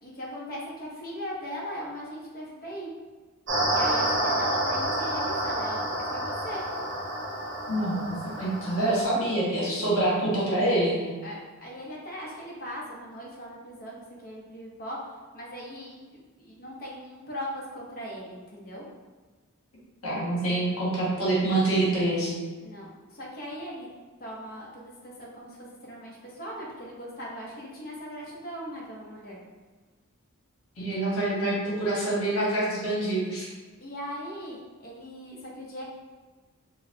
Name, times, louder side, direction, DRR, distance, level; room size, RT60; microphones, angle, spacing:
voice 1, 0.0-2.9 3.7-6.6 11.2-15.0 15.3-18.8 22.6-23.9 24.2-29.4 33.8-35.8, equal, 40° left, -4 dB, 0.8 m, -39 dB
sound 1, 3.5-9.0, right 1 dB, 55° right, 0.8 m, -29 dB
voice 2, 7.7-11.1 20.0-22.3 30.8-33.5, right 1 dB, 75° left, -6 dB, 1.2 m, -26 dB
4.6 x 2.1 x 2.7 m, 1.3 s
head